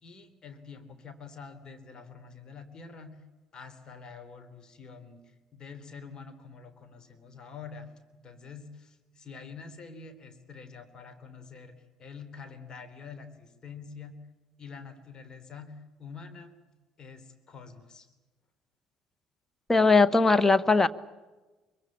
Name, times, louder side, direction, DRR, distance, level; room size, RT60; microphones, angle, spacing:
voice 1, 0.0-3.2 3.5-14.3 14.6-16.5 17.0-18.1, left 5 dB, 35° left, 8 dB, 3.4 m, -46 dB
voice 2, 19.7-20.9, left 3 dB, 15° left, 13 dB, 1.3 m, -20 dB
24.5 x 23.5 x 8.7 m, 1.2 s
figure-of-eight pair, 55°, 2 cm